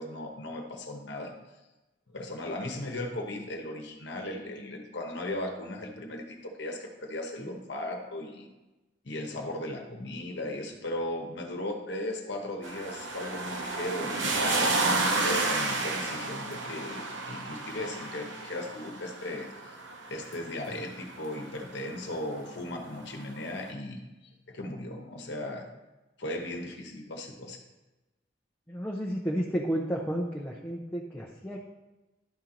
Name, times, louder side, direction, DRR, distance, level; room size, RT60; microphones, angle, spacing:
voice 1, 0.0-1.3 2.1-8.5 9.0-14.7 15.2-19.8 20.1-24.0 24.5-25.6 26.2-27.6, left 1 dB, 65° left, 2 dB, 1.0 m, -37 dB
sound 1, 12.6-21.7 23.0-23.1, right 3 dB, 85° right, 0.8 m, -31 dB
voice 2, 28.7-31.6, equal, 10° left, -3 dB, 0.6 m, -32 dB
11.5 x 4.4 x 3.8 m, 1.1 s
head